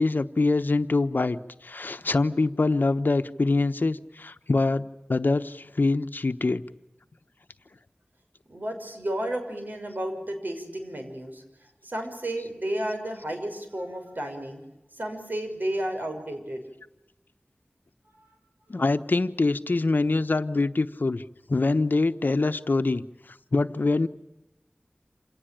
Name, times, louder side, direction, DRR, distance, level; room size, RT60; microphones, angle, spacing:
voice 1, 0.0-6.6 18.7-21.2 21.5-23.0 23.5-24.1, left 3 dB, 75° left, 10 dB, 1.0 m, -24 dB
voice 2, 8.5-11.4 11.8-14.6 14.9-16.6, right 1 dB, 65° right, 5 dB, 6.3 m, -32 dB
28.0 x 18.5 x 8.9 m, 0.95 s
wide cardioid pair, 60°, 3 cm